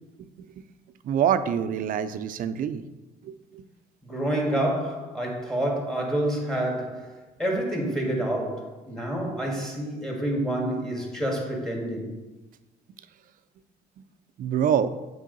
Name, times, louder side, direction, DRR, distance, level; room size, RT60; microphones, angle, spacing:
voice 1, 1.0-2.8 3.2-3.6 14.4-14.9, right 8 dB, 55° right, 0.4 m, -26 dB
voice 2, 4.0-7.1 7.4-12.1, right 1 dB, 5° left, 1.8 m, -28 dB
7.4 x 4.8 x 3.9 m
cardioid pair, 110°, 17 cm